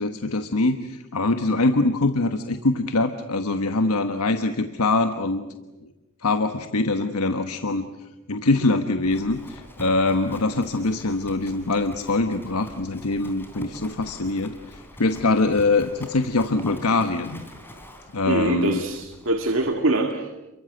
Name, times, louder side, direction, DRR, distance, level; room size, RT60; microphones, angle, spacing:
voice 1, 0.0-5.4 5.8-5.9 6.2-7.9 8.3-17.4 18.1-18.8, left 2 dB, 85° left, 8 dB, 1.3 m, -23 dB
Livestock farm animals working animals, 9.0-19.8, left 1 dB, 10° left, 3.5 m, -44 dB
voice 2, 18.2-20.3, right 2 dB, 60° right, 4 dB, 2.0 m, -24 dB
29.0 x 23.5 x 8.0 m, 1.1 s
head